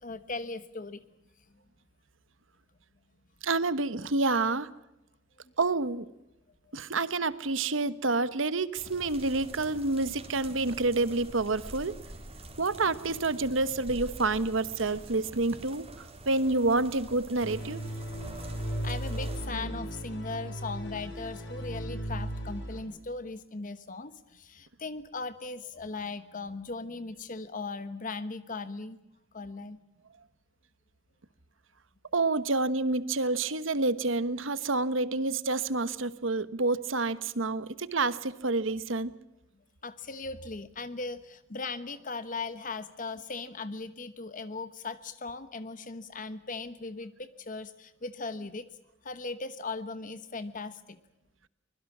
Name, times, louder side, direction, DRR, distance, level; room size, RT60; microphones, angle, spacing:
voice 1, 0.0-1.0 18.8-29.0 29.3-29.8 39.8-48.6 49.0-51.0, left 3 dB, 40° left, 12 dB, 1.1 m, -38 dB
voice 2, 3.4-4.7 5.6-6.1 6.7-12.0 12.6-17.8 32.1-39.1, right 3 dB, 70° right, 15 dB, 1.2 m, -28 dB
sound 1, 8.8-19.5, right 2 dB, 30° right, 3.8 m, -46 dB
sound 2, 17.4-22.8, equal, 65° left, 7.3 m, -36 dB
24.5 x 21.5 x 7.3 m, 0.89 s
head